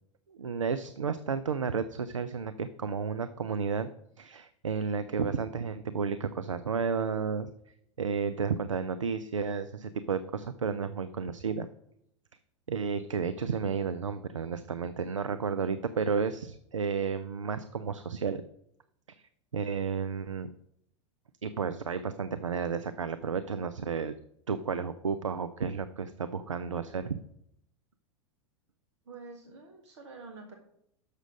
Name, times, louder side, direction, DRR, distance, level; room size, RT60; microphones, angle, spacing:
voice 1, 0.3-3.9 4.2-7.5 8.0-11.7 12.7-18.4 19.5-20.5 21.4-24.2 24.5-27.2, right 5 dB, 90° right, 12 dB, 0.4 m, -32 dB
voice 2, 29.0-30.5, right 4 dB, 65° right, 3 dB, 1.3 m, -47 dB
6.6 x 6.2 x 5.1 m, 0.74 s
figure-of-eight pair, 90°, 16 cm